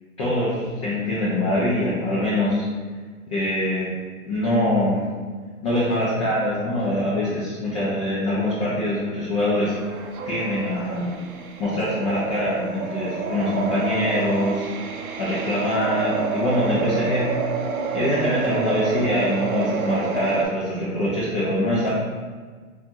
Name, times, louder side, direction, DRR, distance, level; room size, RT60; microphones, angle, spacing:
voice 1, 0.2-2.6 3.3-3.9 4.3-5.0 5.6-9.7 10.3-11.2 11.6-14.7 15.2-17.3 17.9-21.9, left 1 dB, 25° left, -9 dB, 0.4 m, -23 dB
sound 1, 9.6-20.5, right 5 dB, 80° right, 0.5 m, -29 dB
2.7 x 2.4 x 2.6 m, 1.5 s
hypercardioid pair, 145°, 43 cm